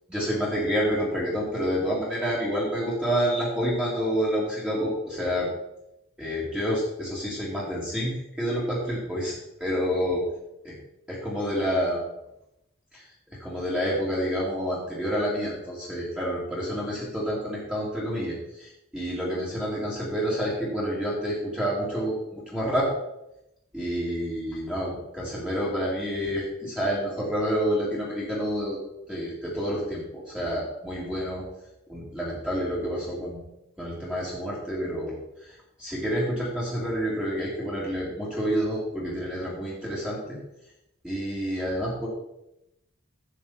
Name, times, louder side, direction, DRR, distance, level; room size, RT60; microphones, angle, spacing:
voice 1, 0.1-5.5 6.2-9.3 9.6-10.2 10.6-10.7 11.1-12.0 12.9-13.0 13.4-22.9 23.7-28.8 29.1-31.4 31.9-33.4 33.8-40.4 41.0-42.1, equal, 5° right, -6 dB, 3.0 m, -28 dB
10.5 x 8.7 x 4.3 m, 0.85 s
head